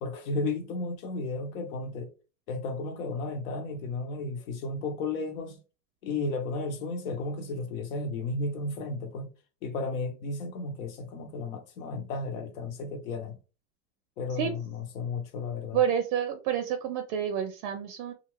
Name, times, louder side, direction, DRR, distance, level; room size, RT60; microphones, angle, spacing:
voice 1, 0.0-2.1 2.5-5.6 6.0-9.3 9.6-13.4 14.2-15.8, left 3 dB, 75° left, 1.0 m, -33 dB
voice 2, 15.7-18.1, right 9 dB, 45° right, 0.5 m, -29 dB
2.5 x 2.5 x 3.1 m
supercardioid pair, 120°, 41 cm